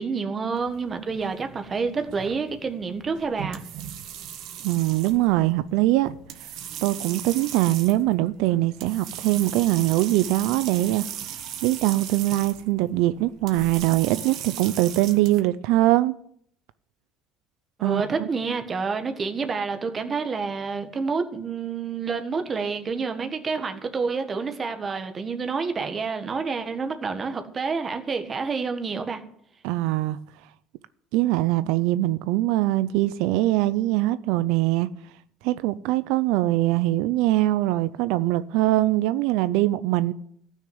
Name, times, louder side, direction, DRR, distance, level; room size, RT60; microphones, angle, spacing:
voice 1, 0.0-3.6 17.8-29.2, right 5 dB, 25° right, 1.5 m, -28 dB
sound 1, 0.6-15.4, right 9 dB, 55° right, 1.6 m, -38 dB
voice 2, 4.6-6.1 6.4-6.5 6.8-11.0 11.6-16.1 17.8-18.3 29.6-30.2 31.1-34.9 35.4-40.1, right 16 dB, 80° right, 0.5 m, -22 dB
15.0 x 6.4 x 9.5 m
cardioid pair, 150°, 0 cm